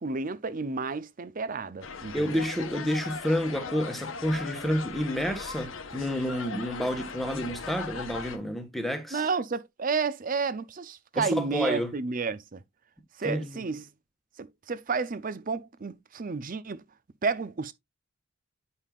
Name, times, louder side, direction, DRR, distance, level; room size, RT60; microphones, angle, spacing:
voice 1, 0.0-2.4 9.1-12.6 13.2-13.8 14.4-16.8 17.2-17.7, right 4 dB, 40° right, 0.6 m, -31 dB
sound 1, 1.8-8.4, left 5 dB, 70° left, 1.1 m, -39 dB
voice 2, 2.1-9.3 11.1-11.9 13.2-13.7, equal, ahead, 1.4 m, -30 dB
9.9 x 5.5 x 2.4 m
head